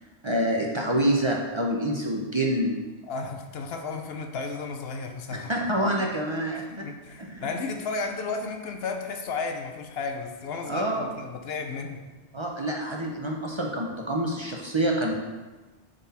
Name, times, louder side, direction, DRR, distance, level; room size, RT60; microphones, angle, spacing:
voice 1, 0.2-2.7 5.5-6.6 7.2-7.5 10.7-11.1 12.3-15.1, right 1 dB, 30° right, -1 dB, 0.7 m, -26 dB
voice 2, 3.1-5.5 6.5-12.0, left 4 dB, 70° left, 4 dB, 0.9 m, -33 dB
7.2 x 4.0 x 4.2 m, 1.2 s
omnidirectional pair, 1.1 m